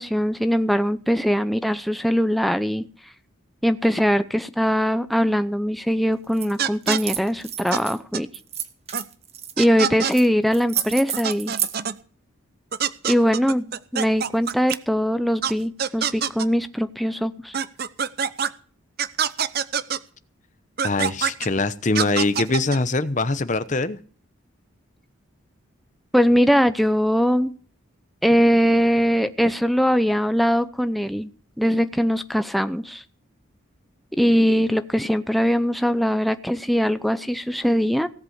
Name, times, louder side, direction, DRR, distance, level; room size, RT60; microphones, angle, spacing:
voice 1, 0.0-2.9 3.6-8.3 9.6-11.6 13.0-17.6 26.1-27.5 28.2-31.3 31.6-33.0 34.2-38.1, equal, ahead, 0.6 m, -21 dB
sound 1, 6.3-6.5 6.8-8.0 8.3-9.5 10.1-10.3 10.5-11.7, right 9 dB, 30° right, 1.3 m, -30 dB
sound 2, 6.6-7.0 7.7-7.8 8.1-8.2 8.9-9.0 9.6-10.1 10.8-10.9 11.1-11.9 12.7-14.8 15.4-15.5 15.8-16.5 17.5-18.5 19.0-20.0 20.8-21.5 21.9-22.8, right 7 dB, 45° right, 0.7 m, -25 dB
voice 2, 20.8-24.0, left 2 dB, 35° left, 0.9 m, -23 dB
17.5 x 8.1 x 6.5 m
head